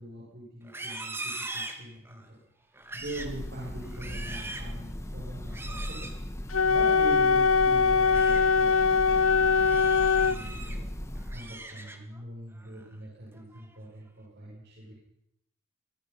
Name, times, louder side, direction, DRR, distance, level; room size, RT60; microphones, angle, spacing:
voice 1, 0.0-2.4 2.9-6.1 6.7-10.9 11.3-14.9, right 1 dB, 55° right, -5 dB, 7.6 m, -43 dB
Livestock farm animals working animals, 0.6-2.3 2.7-3.4 3.8-4.7 5.5-6.2 7.9-8.4 8.9-9.1 9.6-10.8 11.2-12.2 12.6-12.9 13.3-13.8, right 2 dB, 10° right, 2.1 m, -41 dB
Breathing / Bird, 3.0-11.5, equal, 15° left, 1.4 m, -37 dB
Wind instrument woodwind instrument, 6.5-10.4, left 5 dB, 75° left, 0.8 m, -22 dB
24.0 x 24.0 x 5.8 m, 0.80 s
head